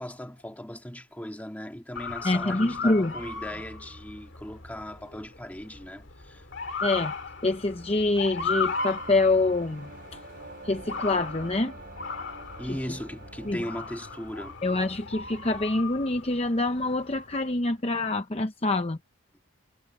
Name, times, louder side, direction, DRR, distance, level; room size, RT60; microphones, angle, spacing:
voice 1, 0.0-6.5 12.6-14.6, equal, 5° left, 1.8 m, -38 dB
Motor vehicle (road) / Siren, 1.9-17.5, left 4 dB, 55° left, 2.2 m, -37 dB
voice 2, 2.2-3.1 6.8-7.1 7.4-9.9 10.6-11.7 13.4-13.6 14.6-19.0, left 2 dB, 30° left, 0.7 m, -25 dB
sound 1, 7.0-16.0, right 3 dB, 45° right, 3.9 m, -49 dB
head